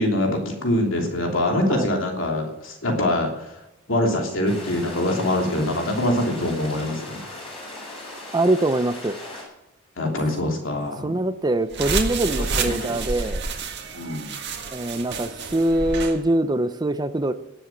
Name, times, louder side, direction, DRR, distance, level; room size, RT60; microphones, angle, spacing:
voice 1, 0.0-3.5 3.9-7.2 10.0-11.2 12.6-13.3 13.9-14.3, left 1 dB, 70° left, 1 dB, 3.1 m, -24 dB
sound 1, 4.4-9.4, left 2 dB, 30° left, 5.9 m, -38 dB
voice 2, 8.3-9.2 11.0-13.4 14.7-17.3, right 1 dB, 20° right, 12 dB, 0.5 m, -23 dB
sound 2, 11.7-16.2, right 4 dB, 60° right, 1.7 m, -29 dB
18.0 x 7.8 x 6.1 m, 0.89 s
head